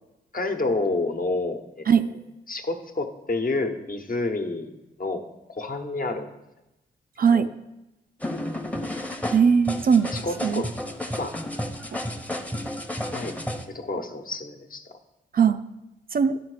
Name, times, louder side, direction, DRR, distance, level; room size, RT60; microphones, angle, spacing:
voice 1, 0.3-2.1 2.5-4.7 5.0-5.2 5.5-6.4 7.3-7.5 10.1-10.7 11.2-11.4 13.0-13.3 13.7-14.8, left 2 dB, 45° left, 5 dB, 1.1 m, -29 dB
voice 2, 7.2-7.5 9.3-10.1 10.4-10.6 15.3-15.6 16.1-16.4, right 6 dB, 45° right, 11 dB, 0.4 m, -19 dB
sound 1, 8.2-13.6, left 1 dB, 5° left, 0.9 m, -32 dB
11.5 x 3.8 x 4.9 m, 0.97 s
supercardioid pair, 45°, 21 cm